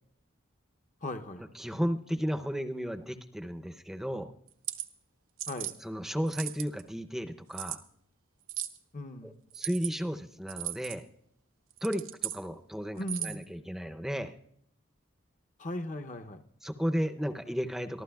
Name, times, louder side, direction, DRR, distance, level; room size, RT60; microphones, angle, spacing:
voice 1, 1.0-1.5 5.5-5.8 8.9-9.3 13.0-13.4 15.6-16.4, left 1 dB, 40° left, 6 dB, 0.7 m, -38 dB
voice 2, 1.5-4.3 5.8-7.8 9.2-11.1 11.8-14.4 16.6-18.0, equal, ahead, 7 dB, 0.6 m, -34 dB
sound 1, 4.5-4.9 5.4-5.8 6.3-6.8 7.5-7.8 8.5-8.8 9.5-9.9 10.5-11.0 11.7-12.4 13.0-13.4, right 13 dB, 90° right, 1.0 m, -37 dB
24.5 x 14.5 x 2.3 m, 0.69 s
head